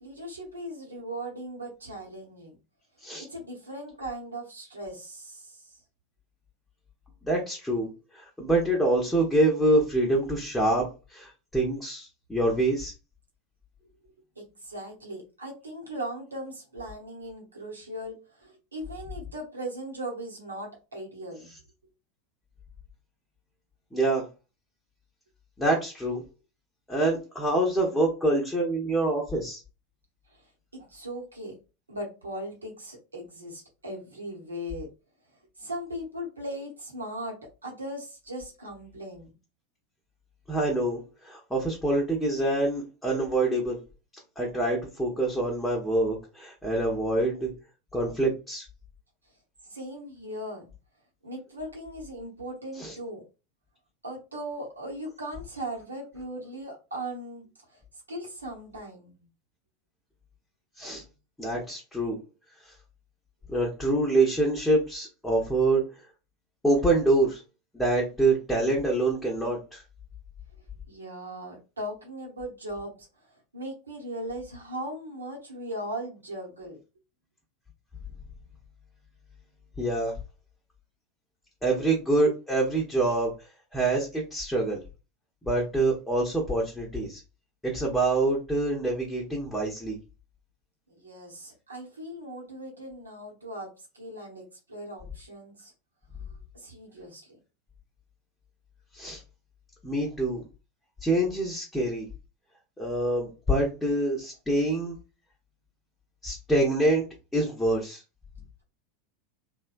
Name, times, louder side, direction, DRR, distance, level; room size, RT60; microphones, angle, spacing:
voice 1, 0.0-2.5 3.3-5.7 14.4-21.5 30.3-30.4 30.7-31.5 31.9-34.9 35.6-39.3 49.6-50.7 51.2-53.2 54.0-57.8 58.1-59.2 70.9-73.1 73.5-76.8 90.9-95.7 96.5-97.3, right 1 dB, 85° right, -1 dB, 0.9 m, -38 dB
voice 2, 7.2-7.9 8.1-12.9 23.9-24.3 25.6-26.2 26.9-29.6 40.5-43.8 44.4-47.5 47.9-48.6 52.8-52.9 60.8-61.0 61.4-62.2 62.6-62.7 63.5-65.8 66.6-67.4 67.7-69.8 79.8-80.1 81.6-83.3 83.7-84.8 85.4-87.2 87.6-90.0 98.9-99.2 99.8-100.4 101.0-102.1 102.8-105.0 106.2-107.0 107.3-108.0, right 2 dB, 10° left, -2 dB, 0.8 m, -26 dB
2.8 x 2.2 x 2.5 m, 0.30 s
figure-of-eight pair, 85°, 0 cm